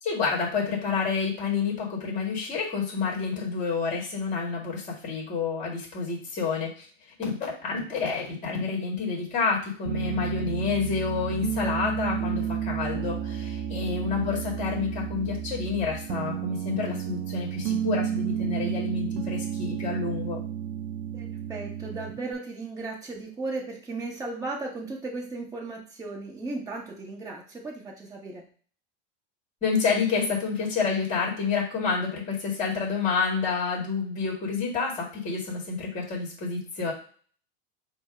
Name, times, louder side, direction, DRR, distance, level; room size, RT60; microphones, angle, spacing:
voice 1, 0.0-6.9 7.2-20.4 29.6-36.9, left 5 dB, 25° left, -2 dB, 1.9 m, -29 dB
Piano, 9.8-22.3, right 9 dB, 60° right, 0.5 m, -32 dB
voice 2, 21.1-28.5, right 3 dB, 10° right, -2 dB, 0.9 m, -36 dB
5.2 x 2.1 x 4.8 m, 0.44 s
supercardioid pair, 140°, 32 cm